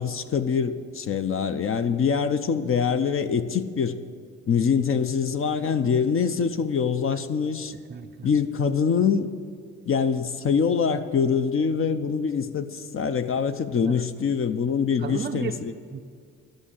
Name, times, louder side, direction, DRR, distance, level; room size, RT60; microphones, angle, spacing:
voice 1, 0.0-4.0 4.5-7.7 8.2-9.3 9.9-15.7, left 6 dB, 45° left, 9 dB, 0.6 m, -24 dB
voice 2, 7.7-8.3 13.8-14.0 15.0-15.6 15.9-16.0, right 7 dB, 30° right, 4 dB, 0.5 m, -34 dB
12.5 x 6.4 x 8.6 m, 2.2 s
cardioid pair, 90°, 30 cm